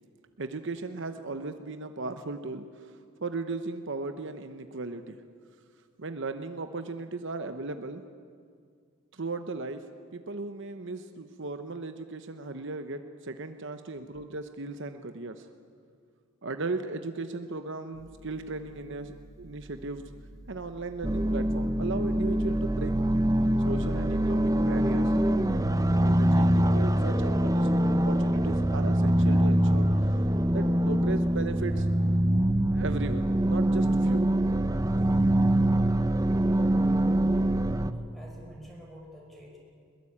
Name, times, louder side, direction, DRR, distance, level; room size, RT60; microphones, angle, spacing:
voice 1, 0.4-5.2 6.0-8.0 9.1-9.8 10.1-15.5 16.4-20.0 20.5-22.9 23.6-25.2 26.0-30.3 30.5-31.9 32.7-34.3, right 3 dB, 55° right, 8 dB, 1.0 m, -36 dB
sound 1, 21.0-37.9, right 1 dB, 15° right, 0.6 m, -24 dB
voice 2, 36.3-37.1 37.8-39.6, equal, ahead, -2 dB, 5.9 m, -49 dB
21.5 x 21.5 x 8.6 m, 2.2 s
head